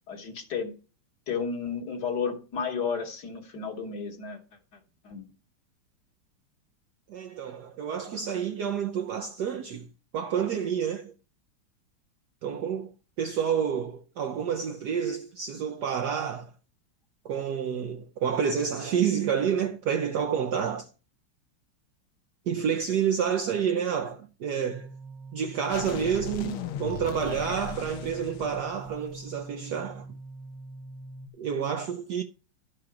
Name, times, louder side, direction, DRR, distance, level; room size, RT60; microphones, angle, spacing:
voice 1, 0.1-0.7 1.3-4.4 5.0-5.2, left 6 dB, 55° left, 1.7 m, -32 dB
voice 2, 7.1-9.9 10.1-11.1 12.4-12.9 13.2-16.5 17.2-20.9 22.5-24.9 25.3-30.1 31.4-32.2, right 7 dB, 70° right, 1.0 m, -29 dB
sound 1, 24.6-31.3, right 1 dB, 85° right, 1.8 m, -44 dB
sound 2, 25.7-29.4, left 8 dB, 75° left, 1.5 m, -38 dB
11.5 x 4.9 x 5.9 m
omnidirectional pair, 2.4 m